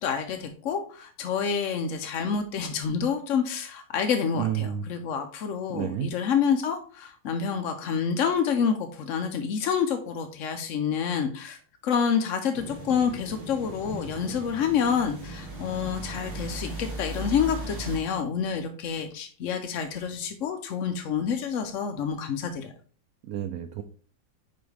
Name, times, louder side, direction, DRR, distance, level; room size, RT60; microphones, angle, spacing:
voice 1, 0.0-22.7, left 7 dB, 75° left, 6 dB, 0.7 m, -28 dB
voice 2, 4.4-5.0 5.7-6.1 23.2-23.8, right 10 dB, 85° right, 9 dB, 0.8 m, -30 dB
sound 1, 12.5-18.0, right 1 dB, 30° right, 1.6 m, -37 dB
7.0 x 5.1 x 3.3 m, 0.42 s
omnidirectional pair, 2.1 m